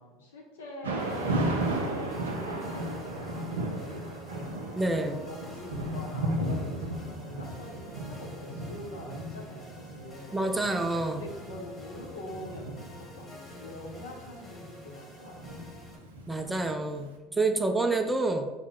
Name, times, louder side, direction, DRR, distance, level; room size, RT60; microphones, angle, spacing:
voice 1, 0.0-10.4 11.0-15.6 17.2-17.6, left 1 dB, 80° left, -1 dB, 0.7 m, -44 dB
Thunder / Rain, 0.8-16.9, right 1 dB, 85° right, 0.4 m, -35 dB
sound 1, 1.0-16.0, left 1 dB, 20° left, 1.1 m, -49 dB
voice 2, 4.8-5.2 10.3-11.2 16.3-18.5, right 2 dB, 15° right, 6 dB, 0.4 m, -28 dB
3.6 x 2.1 x 3.5 m, 1.2 s
hypercardioid pair, 70°, 0 cm